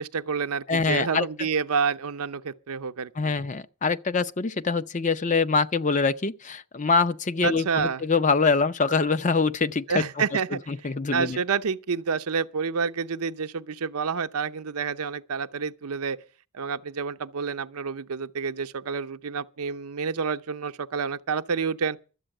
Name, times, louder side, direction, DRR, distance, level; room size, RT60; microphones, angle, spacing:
voice 1, 0.0-3.3 7.4-8.0 9.9-10.6 11.1-16.2 16.5-22.0, right 5 dB, 85° right, 0.6 m, -29 dB
voice 2, 0.7-1.5 3.2-10.0 10.5-11.4, left 4 dB, 35° left, 0.6 m, -24 dB
12.5 x 7.9 x 7.6 m
head